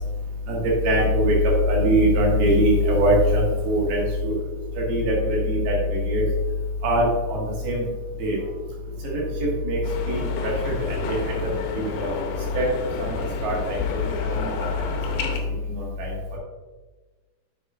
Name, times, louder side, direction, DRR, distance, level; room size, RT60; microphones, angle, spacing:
voice 1, 0.8-1.4 1.7-4.4 4.9-6.2 6.8-7.8 8.2-8.4 9.1-9.2 9.7-9.8 10.1-10.7 11.1-11.2 12.0-12.1 12.6-12.7 13.0-13.1 13.4-13.8 14.3-14.5 16.0-16.1, equal, 75° right, -3 dB, 3.7 m, -21 dB
sound 1, 9.8-15.4, left 5 dB, 90° left, 2.8 m, -30 dB
8.1 x 6.7 x 2.5 m, 1.3 s
omnidirectional pair, 4.7 m